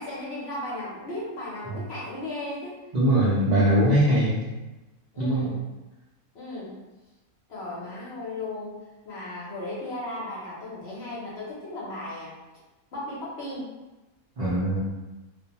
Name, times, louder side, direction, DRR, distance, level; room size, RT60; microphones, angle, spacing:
voice 1, 0.0-2.9 5.1-5.6 6.3-6.8 7.5-8.8 9.0-12.3 12.9-13.7, left 1 dB, 55° left, -7 dB, 0.9 m, -35 dB
voice 2, 2.9-4.4 5.2-5.5 14.4-14.8, right 1 dB, 60° right, -9 dB, 0.4 m, -21 dB
2.4 x 2.2 x 2.8 m, 1.1 s
omnidirectional pair, 1.5 m